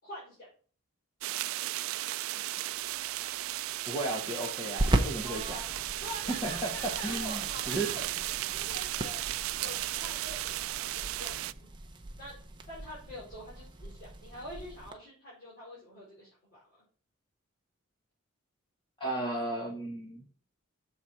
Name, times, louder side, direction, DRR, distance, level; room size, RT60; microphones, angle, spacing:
voice 1, 0.0-0.5 5.2-8.0 8.5-9.2 9.6-11.4 12.2-12.3 12.7-16.6, equal, 40° left, -9 dB, 4.5 m, -45 dB
sound 1, 1.2-11.5, right 16 dB, 75° right, 0.3 m, -35 dB
sound 2, 2.7-14.9, right 1 dB, 20° right, 0.7 m, -38 dB
voice 2, 3.9-5.6 6.3-7.4 7.7-7.9 19.0-20.2, right 1 dB, 20° left, -1 dB, 1.2 m, -34 dB
7.0 x 4.3 x 6.3 m, 0.42 s
head